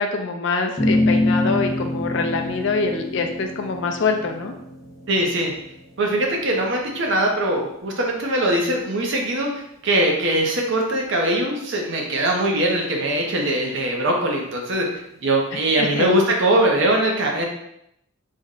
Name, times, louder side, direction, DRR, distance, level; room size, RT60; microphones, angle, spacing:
voice 1, 0.0-4.5 15.5-16.1, left 4 dB, 55° left, 4 dB, 0.4 m, -24 dB
sound 1, 0.8-7.3, left 1 dB, 15° left, 0.9 m, -26 dB
voice 2, 5.1-5.5 6.0-17.5, right 1 dB, 55° right, 0 dB, 0.6 m, -21 dB
3.5 x 2.1 x 3.6 m, 0.78 s
head